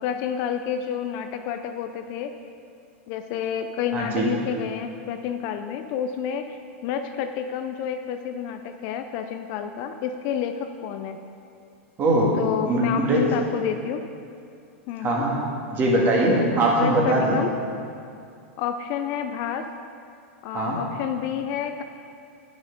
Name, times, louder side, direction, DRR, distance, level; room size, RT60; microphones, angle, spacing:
voice 1, 0.0-2.3 3.1-11.2 12.3-14.0 14.9-15.3 16.8-17.5 18.6-19.7 20.4-21.8, left 8 dB, 45° left, 7 dB, 0.5 m, -29 dB
voice 2, 3.9-4.3 12.0-12.3 12.7-13.2 15.0-15.4 15.7-17.4 20.5-20.8, right 1 dB, 30° right, -3 dB, 1.8 m, -21 dB
9.2 x 6.2 x 5.2 m, 2.5 s
supercardioid pair, 140°, 7 cm